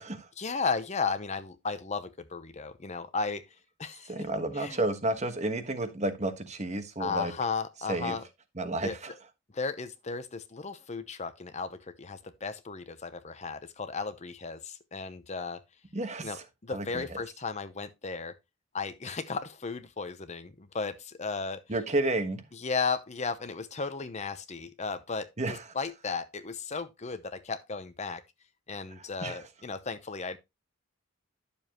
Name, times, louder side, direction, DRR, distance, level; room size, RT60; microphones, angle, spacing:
voice 1, 0.4-3.5 3.8-4.1 4.6-4.8 7.0-8.2 8.8-8.9 9.5-15.6 16.2-18.3 18.7-21.6 22.5-28.2 28.7-30.4, left 4 dB, 35° left, 0.8 m, -35 dB
voice 2, 4.1-7.3 7.9-8.2 8.6-9.1 15.9-16.4 16.7-17.0 21.7-22.4 25.4-25.6 29.2-29.4, right 2 dB, 35° right, 1.3 m, -31 dB
11.0 x 7.1 x 3.0 m
head